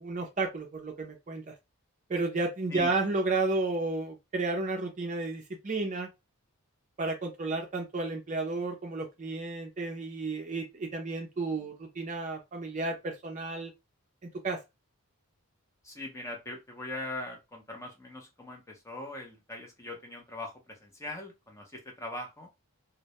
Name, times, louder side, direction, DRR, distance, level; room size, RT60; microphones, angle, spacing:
voice 1, 0.0-1.5 2.1-6.1 7.0-13.7 14.4-14.6, right 3 dB, 35° right, 0.4 m, -32 dB
voice 2, 15.8-21.7 22.0-22.5, left 2 dB, 15° left, 0.6 m, -41 dB
2.2 x 2.0 x 2.8 m
head